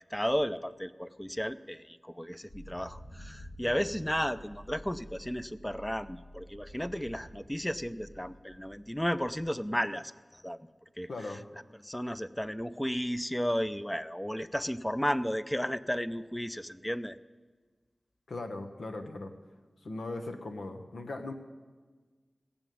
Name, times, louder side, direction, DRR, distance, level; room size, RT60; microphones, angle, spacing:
voice 1, 0.0-10.6 11.0-11.1 11.8-17.2, equal, 10° left, 13 dB, 0.5 m, -33 dB
sound 1, 2.5-9.5, equal, 60° left, 2.7 m, -50 dB
voice 2, 11.1-11.4 18.3-19.3 19.8-21.3, left 2 dB, 85° left, 6 dB, 1.0 m, -39 dB
16.0 x 7.0 x 9.2 m, 1.4 s
cardioid pair, 45°, 0 cm